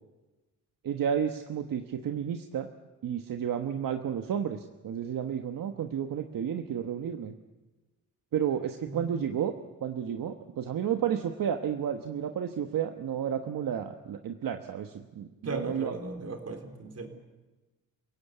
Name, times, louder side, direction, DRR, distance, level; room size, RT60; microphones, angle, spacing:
voice 1, 0.8-2.7 3.0-7.3 8.3-9.5 9.8-15.9, right 8 dB, 75° right, 5 dB, 1.3 m, -31 dB
voice 2, 8.9-9.3 15.4-17.1, right 3 dB, 45° right, 4 dB, 4.2 m, -37 dB
28.5 x 17.5 x 8.4 m, 1.2 s
cardioid pair, 100°, 34 cm